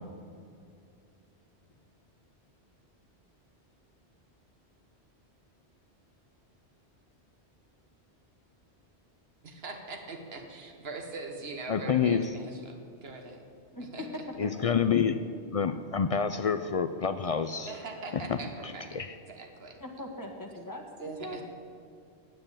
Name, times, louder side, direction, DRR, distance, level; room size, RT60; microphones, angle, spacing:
voice 1, 9.4-13.5 13.8-14.2 17.7-19.0 19.3-19.8 21.0-21.4, right 3 dB, 65° right, 3 dB, 1.6 m, -42 dB
voice 2, 11.7-12.2 14.4-15.2 15.5-17.7 18.9-19.1, left 7 dB, 65° left, 10 dB, 0.3 m, -27 dB
voice 3, 13.7-14.1 14.4-14.7 19.8-21.4, left 1 dB, 20° left, 2 dB, 1.4 m, -41 dB
9.7 x 9.0 x 8.7 m, 2.4 s
omnidirectional pair, 1.1 m